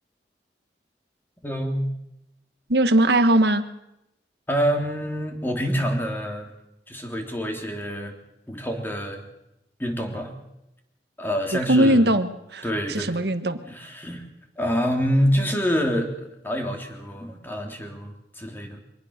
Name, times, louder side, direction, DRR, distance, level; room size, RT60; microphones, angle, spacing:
voice 1, 1.4-1.9 4.5-6.5 6.9-8.1 8.5-9.2 9.8-10.3 11.2-12.1 12.6-13.2 13.7-14.2 14.6-16.1 16.4-18.8, equal, 10° left, 2 dB, 3.3 m, -26 dB
voice 2, 2.7-3.6 11.7-13.6, right 1 dB, 70° right, 10 dB, 1.5 m, -20 dB
24.5 x 19.0 x 6.7 m, 0.86 s
head